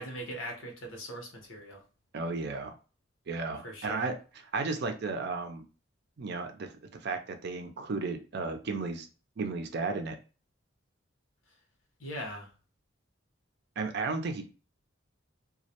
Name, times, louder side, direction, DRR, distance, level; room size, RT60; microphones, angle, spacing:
voice 1, 0.0-1.8 3.6-4.1 12.0-12.5, equal, 85° left, 1 dB, 0.8 m, -40 dB
voice 2, 2.1-2.7 3.3-4.1 4.5-5.7 6.2-9.1 9.4-10.2 13.8-14.5, right 3 dB, 55° right, 7 dB, 0.4 m, -34 dB
2.2 x 2.1 x 2.7 m, 0.35 s
head